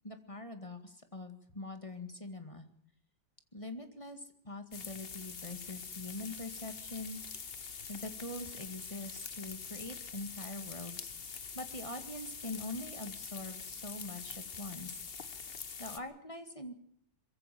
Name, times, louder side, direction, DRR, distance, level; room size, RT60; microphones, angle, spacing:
voice 1, 0.0-2.7 3.5-7.6 7.9-14.9 15.8-16.7, left 2 dB, 15° left, 7 dB, 1.9 m, -44 dB
sound 1, 4.7-16.0, left 6 dB, 35° left, 1.1 m, -45 dB
22.5 x 15.5 x 7.7 m, 0.67 s
omnidirectional pair, 2.1 m